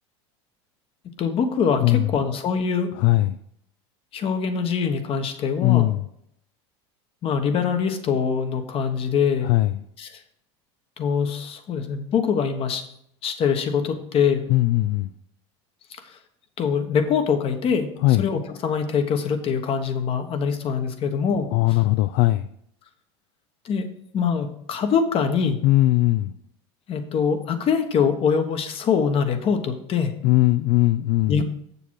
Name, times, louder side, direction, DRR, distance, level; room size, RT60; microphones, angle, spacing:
voice 1, 1.2-3.0 4.1-5.9 7.2-9.5 10.0-10.2 11.0-12.8 13.2-14.5 15.9-16.2 16.6-21.8 23.6-23.9 24.1-25.6 26.9-30.2 31.3-31.4, left 6 dB, 40° left, 8 dB, 1.2 m, -24 dB
voice 2, 3.0-3.4 5.6-6.1 9.4-9.7 14.5-15.1 18.0-18.2 21.5-22.5 25.6-26.3 30.2-31.4, left 17 dB, 60° left, 12 dB, 0.4 m, -19 dB
7.2 x 6.9 x 4.7 m, 0.70 s
supercardioid pair, 105°, 14 cm